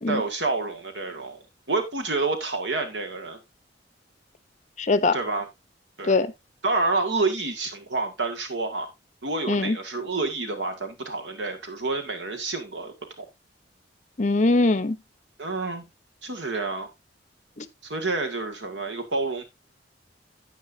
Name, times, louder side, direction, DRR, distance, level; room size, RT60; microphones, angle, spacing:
voice 1, 0.1-1.4 1.7-3.4 5.1-5.5 6.0-6.1 6.6-8.9 9.2-13.3 15.4-15.9 16.2-16.9 17.8-19.4, right 3 dB, 75° right, 1.9 m, -28 dB
voice 2, 4.8-5.2 6.0-6.3 9.5-9.8 14.2-15.0 17.6-17.7, left 3 dB, 40° left, 0.8 m, -22 dB
10.0 x 9.0 x 2.6 m
head